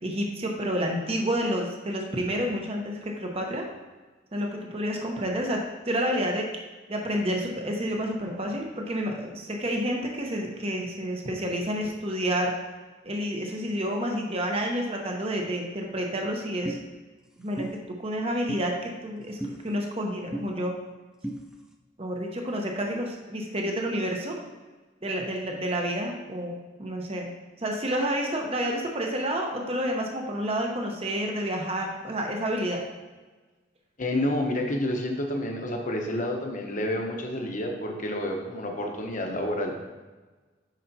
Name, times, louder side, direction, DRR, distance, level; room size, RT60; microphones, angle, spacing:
voice 1, 0.0-3.7 4.3-5.6 5.9-6.5 6.9-12.5 13.0-16.8 17.4-19.4 19.6-20.7 22.0-24.4 25.0-27.3 27.6-32.8, equal, 30° right, 1 dB, 0.9 m, -29 dB
sound 1, 16.7-16.8 17.6-17.7 18.5-18.6 19.4-19.6 20.3-20.5 21.2-21.4, right 1 dB, 5° right, 0.5 m, -32 dB
voice 2, 34.0-39.8, left 1 dB, 40° left, 2 dB, 1.0 m, -29 dB
9.1 x 5.6 x 2.8 m, 1.3 s
head